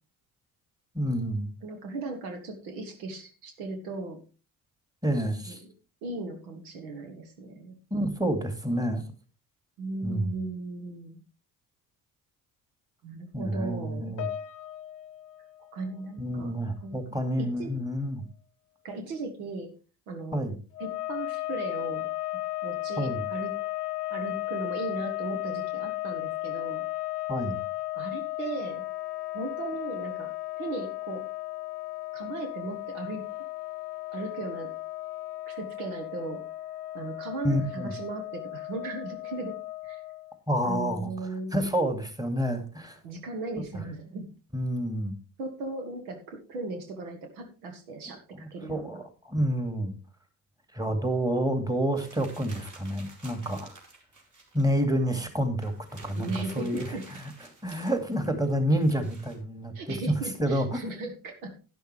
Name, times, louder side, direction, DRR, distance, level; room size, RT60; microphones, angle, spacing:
voice 1, 0.9-1.5 5.0-5.6 7.9-9.0 10.0-10.3 13.3-14.3 16.2-18.2 20.3-20.6 23.0-23.2 27.3-27.6 37.4-37.9 40.5-41.1 41.5-43.0 44.5-45.2 48.4-49.9 50.7-53.8 54.5-55.7 56.0-57.0 57.6-60.0 60.4-60.8, equal, 10° right, 7 dB, 2.2 m, -28 dB
voice 2, 1.6-4.2 5.4-5.7 6.0-7.8 9.8-11.2 13.0-14.2 15.7-17.0 17.4-17.7 18.8-19.7 20.1-20.5 20.8-22.1 22.6-23.5 24.1-26.8 27.9-28.8 29.3-30.3 30.6-31.2 32.1-33.3 34.1-34.7 35.5-36.4 36.9-39.6 39.8-40.0 40.6-41.5 43.0-44.3 45.4-49.0 56.1-57.1 59.7-61.5, right 3 dB, 70° right, 5 dB, 1.6 m, -37 dB
Piano, 14.2-16.8 17.1-17.4 18.2-18.3, left 11 dB, 45° left, 0.8 m, -42 dB
sound 1, 20.7-40.4, left 18 dB, 85° left, 0.7 m, -35 dB
sound 2, 52.0-54.7 55.1-55.2 55.4-59.4, right 3 dB, 40° right, 3.7 m, -51 dB
11.5 x 10.0 x 3.3 m, 0.34 s
figure-of-eight pair, 50°, 46 cm